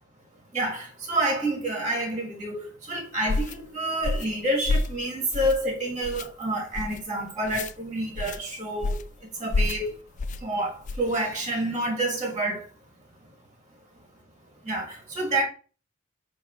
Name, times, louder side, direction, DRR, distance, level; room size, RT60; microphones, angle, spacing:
voice 1, 0.5-9.0 9.4-10.0 10.4-12.6 14.7-15.4, right 1 dB, 20° right, 1.5 m, -28 dB
sound 1, 3.3-3.6 4.0-4.3 4.7-5.0 5.3-5.7 6.0-6.3 6.7-7.0 7.5-7.7 8.2-8.4 8.8-9.1 9.5-9.8 10.2-10.4 10.8-11.1, left 2 dB, 40° left, 0.3 m, -28 dB
8.3 x 2.8 x 5.5 m
head